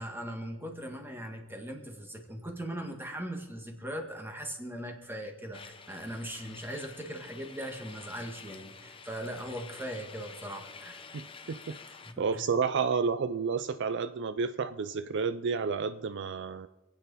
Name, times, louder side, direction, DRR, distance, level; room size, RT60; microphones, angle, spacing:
voice 1, 0.0-11.1 12.0-12.4, equal, 10° right, 3 dB, 1.9 m, -39 dB
sound 1, 5.5-12.1, left 5 dB, 25° left, 0.8 m, -49 dB
voice 2, 11.1-11.8 12.2-16.7, right 5 dB, 60° right, 12 dB, 0.4 m, -31 dB
27.0 x 9.2 x 4.1 m, 1.1 s
head